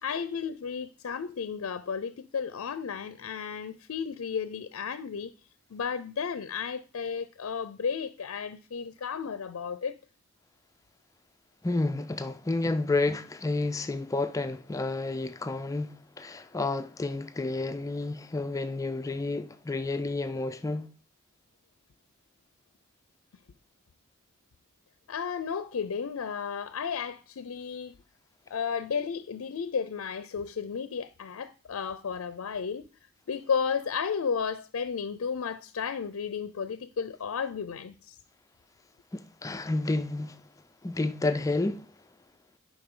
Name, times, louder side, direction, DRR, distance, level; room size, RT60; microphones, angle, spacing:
voice 1, 0.0-5.3 5.7-10.0 25.1-27.9 28.5-32.9 33.3-38.2, left 6 dB, 80° left, 0.5 m, -33 dB
voice 2, 11.6-20.9 39.1-40.4 40.8-41.9, left 2 dB, 15° left, 0.3 m, -30 dB
10.0 x 5.3 x 3.7 m
head